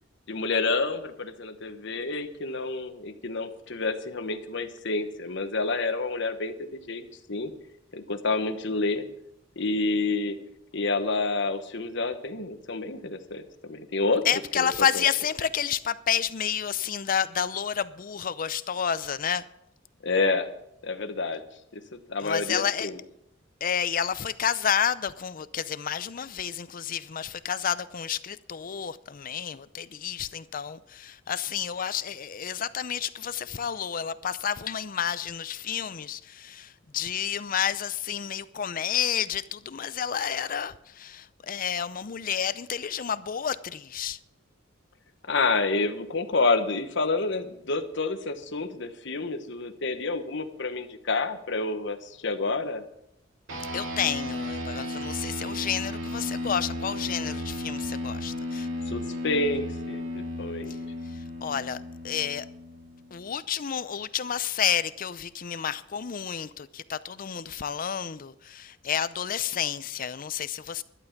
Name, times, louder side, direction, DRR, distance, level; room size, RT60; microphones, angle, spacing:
voice 1, 0.3-7.5 7.9-9.1 9.6-10.4 10.7-14.2 14.5-14.7 14.9-15.0 20.0-20.5 20.8-21.4 21.7-23.0 45.3-52.8 58.9-60.7, left 3 dB, 65° left, 1.2 m, -29 dB
voice 2, 14.2-19.4 22.2-22.9 23.6-44.2 53.7-58.7 60.7-60.8 61.1-62.5 63.1-70.8, left 8 dB, 45° left, 0.5 m, -30 dB
sound 1, 53.5-63.2, left 1 dB, 80° right, 2.3 m, -34 dB
12.0 x 11.5 x 6.0 m
head